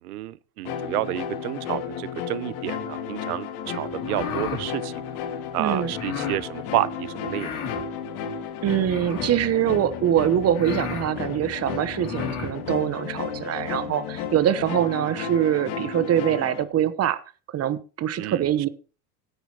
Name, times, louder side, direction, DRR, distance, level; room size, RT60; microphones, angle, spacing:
voice 1, 0.0-5.0 5.5-7.8 18.2-18.7, right 16 dB, 75° right, 0.7 m, -30 dB
sound 1, 0.7-16.6, left 7 dB, 60° left, 2.1 m, -33 dB
sound 2, 3.9-4.7 5.9-6.4 7.3-7.8 8.8-9.4 10.1-10.2 10.5-11.1 11.9-12.5, left 6 dB, 40° left, 3.8 m, -33 dB
voice 2, 5.6-5.9 8.6-17.2 17.5-18.7, right 10 dB, 35° right, 1.0 m, -24 dB
16.5 x 9.1 x 2.9 m
hypercardioid pair, 90°, 45 cm